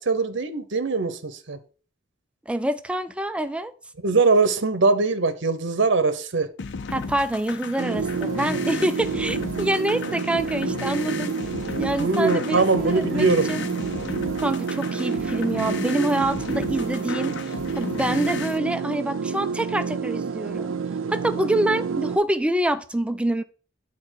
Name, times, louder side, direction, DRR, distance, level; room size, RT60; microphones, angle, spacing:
voice 1, 0.0-1.6 4.0-6.5 12.0-13.5, right 3 dB, 65° right, 0.9 m, -21 dB
voice 2, 2.5-3.7 6.9-11.3 11.8-13.6 14.4-17.3 17.8-20.7 21.1-23.4, right 1 dB, 5° right, 0.4 m, -26 dB
sound 1, 6.6-18.6, left 4 dB, 65° left, 0.5 m, -34 dB
sound 2, 7.8-22.2, right 5 dB, 80° right, 0.5 m, -29 dB
8.7 x 4.2 x 6.3 m
head